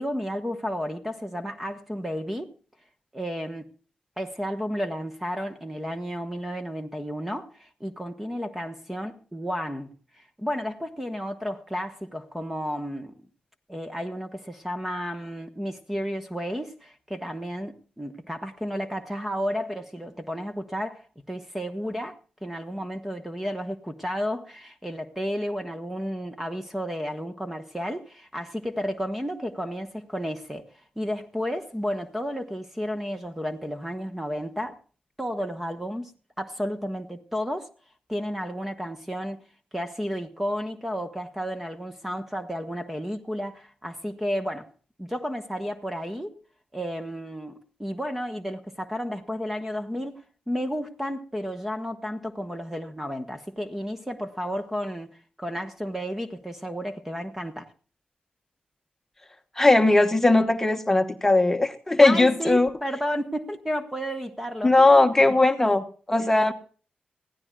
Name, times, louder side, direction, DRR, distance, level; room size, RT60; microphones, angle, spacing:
voice 1, 0.0-2.5 3.1-3.7 4.2-13.3 13.7-30.7 31.0-34.8 35.2-36.1 36.4-37.7 38.1-39.5 39.7-44.7 45.0-46.3 46.7-57.7 62.0-65.1 66.2-66.3, equal, 5° right, 1.2 m, -32 dB
voice 2, 59.6-62.7 64.6-66.5, left 2 dB, 10° left, 1.3 m, -19 dB
21.5 x 16.0 x 2.4 m
wide cardioid pair, 130°, 3 cm